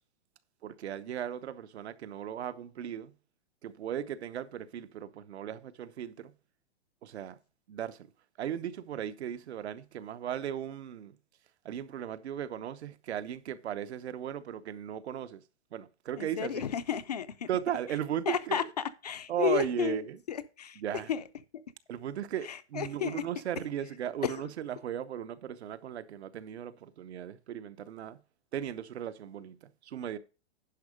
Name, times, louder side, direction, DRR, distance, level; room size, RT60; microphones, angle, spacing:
voice 1, 0.6-3.1 3.6-6.3 7.0-7.4 7.7-8.1 8.4-11.2 11.6-15.4 15.7-16.6 17.5-18.6 19.3-20.2 20.8-21.1 21.9-28.2 28.5-30.2, right 10 dB, 70° right, 0.9 m, -37 dB
voice 2, 16.2-17.5 18.3-20.0 20.3-20.8 21.1-21.2 21.5-21.6 22.4-23.2 24.2-24.4, left 9 dB, 35° left, 0.4 m, -32 dB
10.5 x 5.7 x 4.9 m
hypercardioid pair, 175°, 34 cm